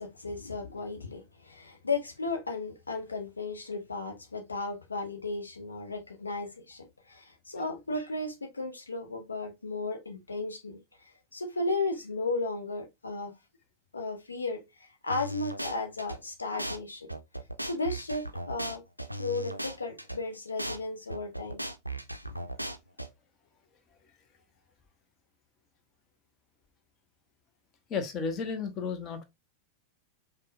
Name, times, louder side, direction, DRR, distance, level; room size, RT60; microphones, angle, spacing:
voice 1, 0.0-13.3 13.9-17.1 17.6-18.8 19.2-21.6 22.2-22.3, left 3 dB, 75° left, 0.6 m, -35 dB
sound 1, 15.1-16.2 16.6-16.8 17.1-20.2 20.6-20.8 21.1-23.1, right 1 dB, 90° right, 0.4 m, -37 dB
voice 2, 27.9-29.2, left 5 dB, 30° left, 0.8 m, -33 dB
5.3 x 2.2 x 2.5 m
figure-of-eight pair, 90°, 0 cm